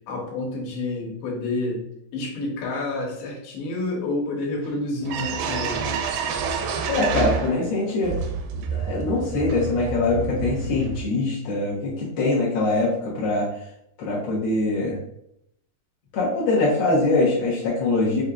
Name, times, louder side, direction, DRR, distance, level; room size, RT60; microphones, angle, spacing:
voice 1, 0.1-1.8 2.1-6.1, left 2 dB, 90° left, -2 dB, 2.9 m, -29 dB
sound 1, 4.6-4.7 5.0-7.7 8.0-11.0, right 5 dB, 80° right, 2.1 m, -28 dB
voice 2, 6.9-8.1 8.5-13.5 14.0-15.0 16.1-18.2, left 2 dB, 75° left, -8 dB, 1.2 m, -23 dB
6.1 x 2.7 x 2.4 m, 0.76 s
omnidirectional pair, 4.3 m